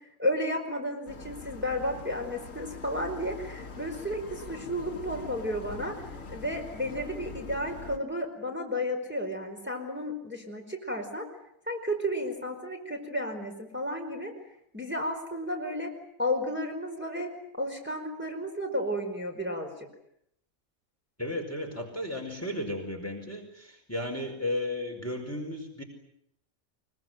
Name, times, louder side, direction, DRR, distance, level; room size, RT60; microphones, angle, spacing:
voice 1, 0.2-6.0 6.3-11.3 11.7-14.3 14.7-15.9 16.2-19.7, equal, 5° right, 1 dB, 5.0 m, -32 dB
sound 1, 1.1-8.0, left 3 dB, 60° left, 2.2 m, -43 dB
voice 2, 21.2-25.8, left 1 dB, 10° left, 2 dB, 4.9 m, -34 dB
24.5 x 23.0 x 9.3 m, 0.74 s
omnidirectional pair, 1.6 m